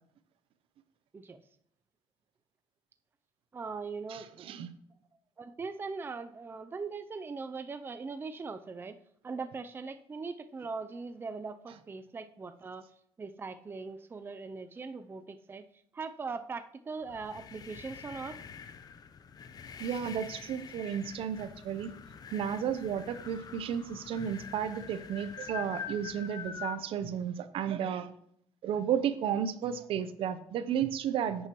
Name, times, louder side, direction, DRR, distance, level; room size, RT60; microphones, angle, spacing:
voice 1, 3.5-4.5 5.4-9.0 9.2-12.8 13.2-15.6 15.9-18.4, right 4 dB, 20° right, 9 dB, 0.5 m, -40 dB
voice 2, 4.1-4.7 19.8-21.9 22.3-28.1 28.6-31.5, right 8 dB, 65° right, 12 dB, 0.8 m, -33 dB
sound 1, 17.0-26.8, left 7 dB, 40° left, 0.7 m, -45 dB
10.5 x 9.1 x 3.1 m, 0.68 s
cardioid pair, 105°, 10 cm